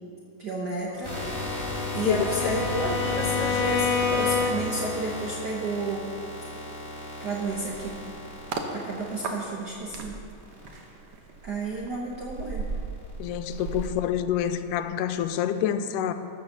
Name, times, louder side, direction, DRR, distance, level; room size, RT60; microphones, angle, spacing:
voice 1, 0.4-1.2 1.9-6.1 7.2-8.0 8.7-10.1 11.4-12.7, right 2 dB, 85° right, -4 dB, 0.9 m, -31 dB
Bowed string instrument, 1.0-4.9, left 6 dB, 70° left, 1.4 m, -29 dB
sound 1, 1.0-9.7 10.4-10.9 11.4-11.7 12.1-13.9, left 2 dB, 10° right, 2.0 m, -35 dB
voice 2, 2.0-2.6 13.2-16.1, left 10 dB, 90° left, 10 dB, 2.2 m, -27 dB
sound 2, 8.3-8.7 9.2-14.8 15.1-15.4, right 4 dB, 65° right, 1.4 m, -37 dB
14.0 x 6.6 x 6.6 m, 2.4 s
omnidirectional pair, 3.7 m